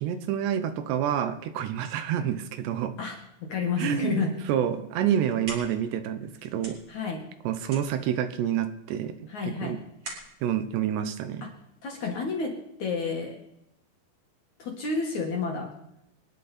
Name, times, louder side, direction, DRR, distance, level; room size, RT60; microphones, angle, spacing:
voice 1, 0.0-3.0 3.8-6.8 7.4-9.1 9.4-9.8 10.4-11.5, right 9 dB, 75° right, 10 dB, 2.9 m, -28 dB
voice 2, 3.0-4.3 6.9-7.3 9.3-9.8 11.4-11.5 11.8-13.4 14.6-15.7, left 4 dB, 55° left, 1 dB, 2.5 m, -30 dB
sound 1, 5.1-11.9, right 2 dB, 35° right, 3.9 m, -45 dB
25.5 x 10.5 x 4.3 m, 0.83 s
omnidirectional pair, 5.1 m